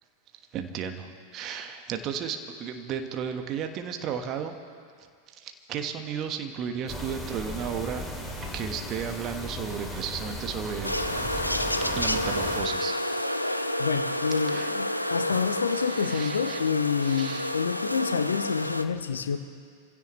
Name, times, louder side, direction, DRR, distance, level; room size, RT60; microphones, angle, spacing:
voice 1, 0.5-4.5 5.3-8.0 8.5-11.3 11.8-12.9 14.5-14.7 15.3-16.6 17.0-17.5, right 7 dB, 35° right, 6 dB, 1.4 m, -34 dB
sound 1, 6.9-12.6, left 1 dB, ahead, 2.7 m, -36 dB
sound 2, 10.8-18.8, left 1 dB, 90° left, 0.6 m, -30 dB
voice 2, 13.8-19.4, left 6 dB, 70° left, 9 dB, 1.0 m, -28 dB
26.0 x 16.5 x 3.2 m, 2.1 s
figure-of-eight pair, 90°, 0 cm